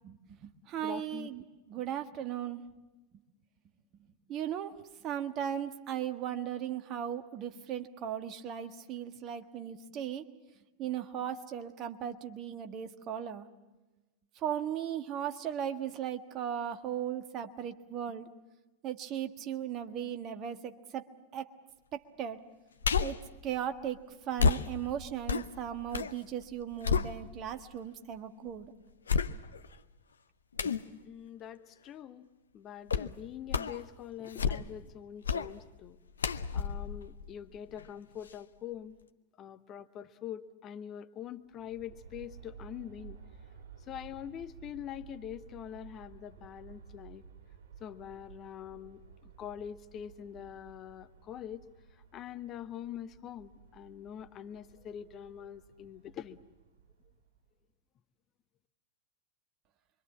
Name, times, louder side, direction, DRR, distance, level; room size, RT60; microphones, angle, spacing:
voice 1, 0.1-1.4 1.7-2.6 4.3-4.7 5.0-10.2 10.8-13.5 14.4-18.3 18.8-21.1 21.3-21.5 21.9-22.4 23.0-23.2 23.4-24.0 24.3-28.7 30.6-30.7, right 9 dB, 35° right, 7 dB, 1.5 m, -37 dB
voice 2, 0.8-1.3 31.0-32.3 32.5-36.0 36.5-39.0 39.4-43.2 43.9-47.2 47.8-51.6 52.1-56.4, left 10 dB, 30° left, 9 dB, 1.0 m, -44 dB
sound 1, 22.8-23.3 24.4-26.2 26.5-27.6 28.1-28.2 29.1-29.7 30.6-30.9 32.9-33.2 33.5-33.8 34.2-34.9 35.2-35.5 36.2-37.9 38.3-38.4, left 6 dB, 70° left, 0.8 m, -31 dB
Aircraft, 41.4-57.5, right 7 dB, 55° right, 5.3 m, -54 dB
26.5 x 24.0 x 7.4 m, 1.1 s
figure-of-eight pair, 90°, 0 cm